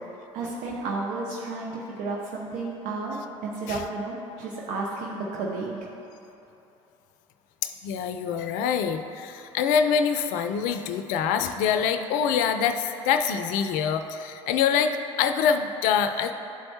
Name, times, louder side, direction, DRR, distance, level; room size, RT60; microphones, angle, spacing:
voice 1, 0.3-3.2 3.4-5.9, right 3 dB, 60° right, -3 dB, 0.8 m, -32 dB
voice 2, 7.6-16.3, left 7 dB, 65° left, 8 dB, 0.4 m, -25 dB
11.0 x 4.4 x 2.8 m, 2.9 s
hypercardioid pair, 60°, 15 cm